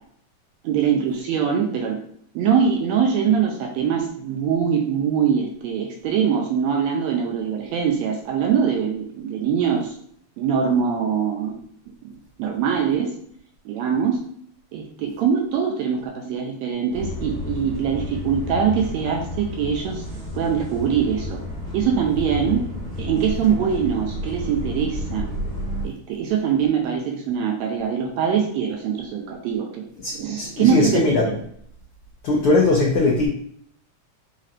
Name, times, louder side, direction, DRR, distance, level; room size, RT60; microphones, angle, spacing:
voice 1, 0.6-2.0 2.4-9.9 10.4-11.6 11.9-12.0 12.4-13.1 13.7-14.2 14.7-20.0 20.4-21.4 21.7-22.6 23.0-25.3 25.8-29.8 30.1-31.4, right 7 dB, 80° right, 1 dB, 1.7 m, -23 dB
sound 1, 16.9-25.9, left 1 dB, 40° right, 1.4 m, -31 dB
voice 2, 30.0-31.2 32.2-33.3, left 2 dB, 85° left, -2 dB, 1.2 m, -20 dB
4.9 x 4.2 x 2.5 m, 0.66 s
omnidirectional pair, 3.5 m